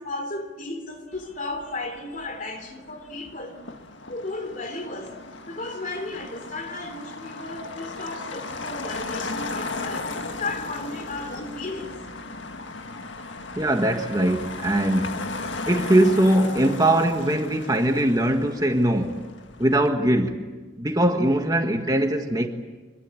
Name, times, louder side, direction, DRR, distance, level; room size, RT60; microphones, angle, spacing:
voice 1, 0.0-3.6 4.1-5.2 5.5-11.9, left 2 dB, 40° left, 3.2 m, -34 dB
Motor vehicle (road), 1.1-19.9, left 3 dB, 70° left, 1.8 m, -36 dB
voice 2, 13.6-15.2 15.7-19.2 19.6-20.4 20.8-22.5, right 1 dB, 20° right, 1.6 m, -21 dB
25.0 x 22.0 x 8.6 m
head